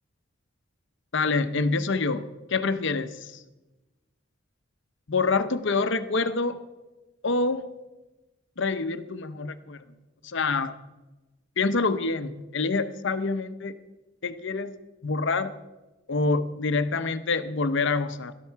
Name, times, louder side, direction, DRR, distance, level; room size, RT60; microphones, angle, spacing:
voice 1, 1.1-3.4 5.1-6.6 7.2-7.7 8.6-9.8 10.2-10.7 11.6-13.7 14.2-14.7 15.0-15.6 16.1-18.3, left 3 dB, 65° left, 11 dB, 0.9 m, -26 dB
18.0 x 13.0 x 4.7 m, 1.1 s
head